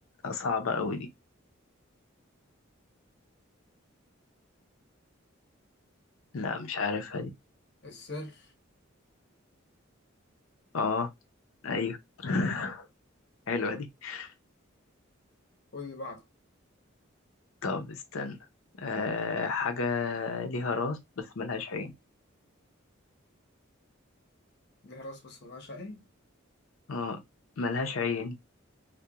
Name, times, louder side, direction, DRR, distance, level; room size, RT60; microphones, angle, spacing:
voice 1, 0.2-1.1 6.3-7.3 10.7-11.1 11.6-12.9 13.5-14.3 17.6-18.4 18.8-21.9 26.9-27.2 27.6-28.4, left 4 dB, 90° left, 0.6 m, -31 dB
voice 2, 7.8-8.5 15.7-16.2 24.8-26.0, left 2 dB, 55° left, 0.8 m, -42 dB
2.8 x 2.1 x 2.3 m
head